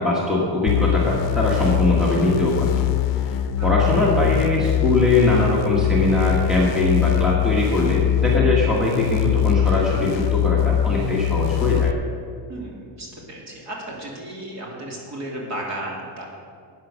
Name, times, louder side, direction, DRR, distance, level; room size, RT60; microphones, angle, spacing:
voice 1, 0.0-2.7 3.3-11.9, left 2 dB, ahead, -5 dB, 1.6 m, -21 dB
sound 1, 0.7-11.9, left 11 dB, 80° left, 0.6 m, -22 dB
voice 2, 12.5-16.3, right 1 dB, 40° right, -2 dB, 2.9 m, -34 dB
11.5 x 9.3 x 6.4 m, 2.3 s
cardioid pair, 165°, 44 cm